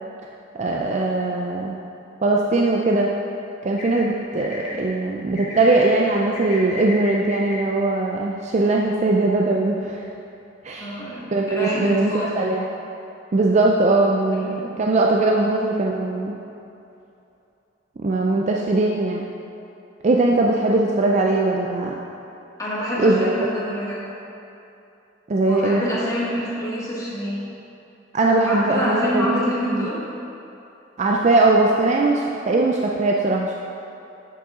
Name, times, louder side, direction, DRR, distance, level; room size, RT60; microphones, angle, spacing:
voice 1, 0.5-1.7 2.2-3.1 3.6-10.1 10.6-11.0 11.3-12.7 13.3-16.4 18.0-19.3 20.0-21.9 23.0-23.3 25.3-25.8 28.1-29.9 31.0-33.6, right 2 dB, 35° right, -1 dB, 0.4 m, -20 dB
sound 1, 3.8-4.0 4.4-4.7 5.3-5.8 6.3-7.6, left 2 dB, 40° left, 1.8 m, -35 dB
voice 2, 10.8-12.3 14.4-14.7 22.6-24.0 25.5-27.4 28.5-30.0, equal, 20° left, -7 dB, 1.7 m, -26 dB
7.6 x 6.8 x 3.7 m, 2.8 s
head